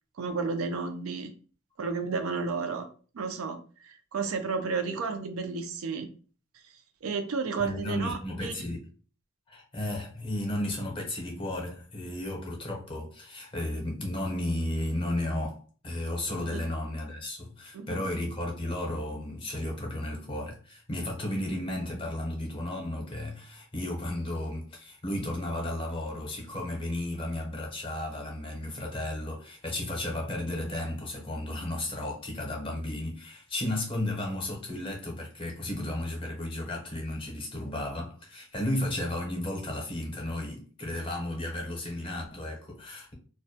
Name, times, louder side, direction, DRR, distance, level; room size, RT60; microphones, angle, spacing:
voice 1, 0.2-1.3 1.8-2.9 3.1-6.1 7.0-8.5 16.5-16.6 17.7-18.0, right 4 dB, 90° right, 0.4 m, -32 dB
voice 2, 7.6-8.8 9.5-43.1, left 1 dB, 25° left, 0.6 m, -34 dB
2.2 x 2.1 x 2.6 m
head